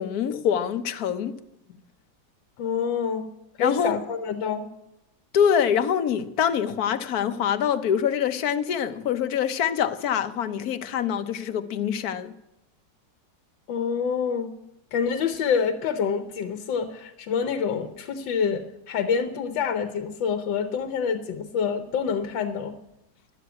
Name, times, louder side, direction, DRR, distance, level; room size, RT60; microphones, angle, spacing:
voice 1, 0.0-1.4 3.6-3.9 5.3-12.3, left 8 dB, 60° left, 1.2 m, -25 dB
voice 2, 2.6-3.3 3.6-4.7 13.7-14.5 14.9-22.8, left 6 dB, 85° left, 1.6 m, -27 dB
12.5 x 11.5 x 8.2 m
omnidirectional pair, 2.0 m